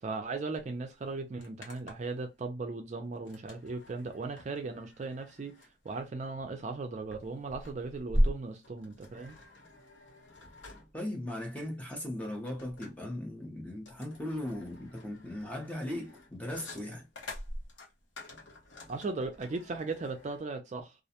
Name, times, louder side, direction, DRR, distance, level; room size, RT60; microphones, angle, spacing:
voice 1, 0.0-5.6 5.8-9.4 18.9-20.9, right 3 dB, 35° right, 0.4 m, -37 dB
sound 1, 0.6-0.7 0.9-2.2 3.2-20.4, equal, 75° left, 0.8 m, -39 dB
voice 2, 10.9-17.1, left 1 dB, 10° left, 0.6 m, -38 dB
2.4 x 2.1 x 2.7 m
head